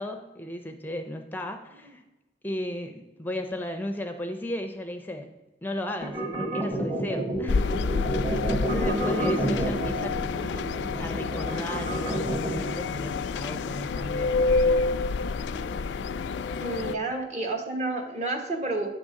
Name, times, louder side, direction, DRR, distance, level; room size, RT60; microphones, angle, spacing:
voice 1, 0.0-2.0 2.4-5.3 5.6-7.6 8.4-10.7 11.0-14.4 17.1-17.3, left 1 dB, 10° left, 6 dB, 0.5 m, -35 dB
sound 1, 6.0-12.7, right 1 dB, 25° right, 1.5 m, -29 dB
sound 2, 7.5-17.0, left 4 dB, 85° left, 0.3 m, -28 dB
voice 2, 16.6-18.9, right 2 dB, 40° right, 3 dB, 1.2 m, -30 dB
9.1 x 3.7 x 6.3 m, 1.1 s
head